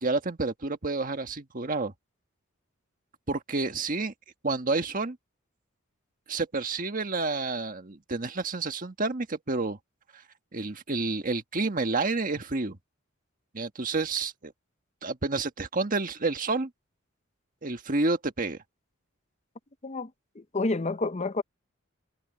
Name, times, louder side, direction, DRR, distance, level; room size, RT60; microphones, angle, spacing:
voice 1, 0.0-1.9 3.3-4.1 4.4-5.2 6.3-9.8 10.5-12.8 13.5-14.5 15.0-16.7 17.6-18.6, right 3 dB, 40° right, 1.5 m, -29 dB
voice 2, 19.8-21.4, left 3 dB, 30° left, 0.7 m, -30 dB
head